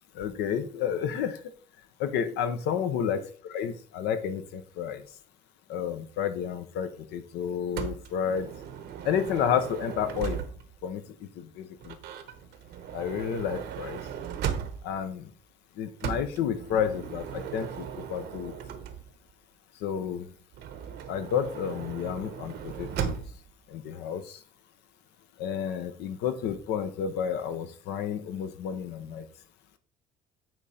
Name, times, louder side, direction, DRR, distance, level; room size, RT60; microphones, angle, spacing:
voice 1, 0.1-1.5 2.0-5.0 5.7-8.5 9.0-10.4 10.8-12.0 12.9-14.0 14.8-15.3 15.8-18.5 19.8-20.3 21.1-23.2 23.7-24.4 25.4-29.2, left 8 dB, 85° left, 9 dB, 1.1 m, -31 dB
Motor vehicle (road) / Sliding door, 7.8-10.8 11.8-15.1 16.0-19.3 20.5-23.5, right 8 dB, 80° right, 1.0 m, -37 dB
9.2 x 3.8 x 4.3 m, 0.42 s
cardioid pair, 110°, 17 cm